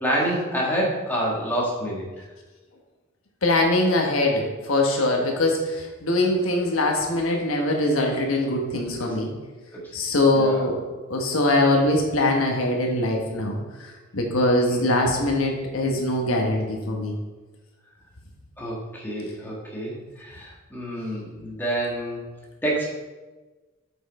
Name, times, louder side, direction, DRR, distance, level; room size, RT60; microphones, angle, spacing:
voice 1, 0.0-2.0 9.0-9.1 9.7-9.9 10.3-10.6 14.7-15.0 18.6-22.2 22.6-22.9, right 1 dB, 10° left, -4 dB, 1.6 m, -28 dB
voice 2, 3.4-9.3 9.9-10.8 11.1-17.2, left 1 dB, 90° left, 1 dB, 1.2 m, -22 dB
6.3 x 5.8 x 4.2 m, 1.2 s
head